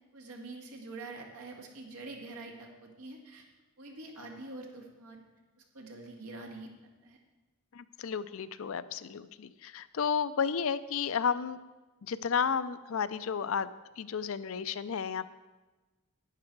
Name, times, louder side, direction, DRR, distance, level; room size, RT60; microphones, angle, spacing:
voice 1, 0.1-3.5 3.8-5.2 5.7-6.7 7.0-7.2, right 2 dB, 80° right, 1 dB, 2.0 m, -45 dB
voice 2, 7.7-11.6 12.0-13.7 14.0-15.3, left 6 dB, 65° left, 14 dB, 0.4 m, -32 dB
11.5 x 9.6 x 4.6 m, 1.2 s
head